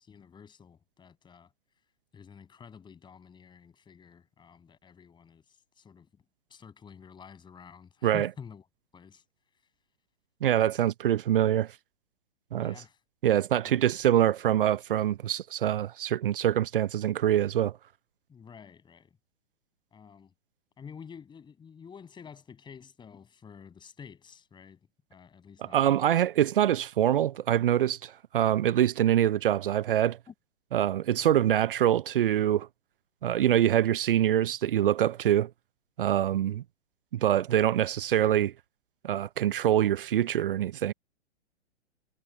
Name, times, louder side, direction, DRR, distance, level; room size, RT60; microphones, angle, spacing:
voice 1, 0.0-1.5 2.1-5.4 5.8-6.1 6.5-8.6 8.9-9.2 12.6-13.0 13.6-13.8 18.3-19.2 19.9-20.3 20.8-26.1 30.3-30.4, left 6 dB, 15° left, 7.3 m, -49 dB
voice 2, 10.4-11.7 12.5-12.7 13.2-17.8 25.6-30.2 30.7-32.7 33.2-35.5 36.0-36.6 37.1-38.5 39.0-40.9, right 11 dB, 50° right, 0.8 m, -25 dB
figure-of-eight pair, 115°, 35 cm